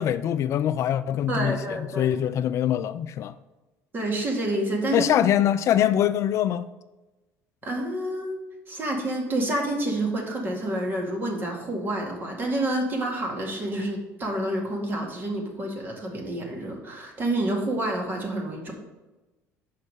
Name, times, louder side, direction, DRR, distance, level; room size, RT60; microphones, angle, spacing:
voice 1, 0.0-3.4 4.9-6.7, left 10 dB, 50° left, 0.3 m, -23 dB
voice 2, 1.3-2.2 3.9-5.1 7.6-8.4 8.7-18.7, right 1 dB, 35° right, 2.0 m, -28 dB
6.6 x 5.4 x 5.4 m
cardioid pair, 105°, 6 cm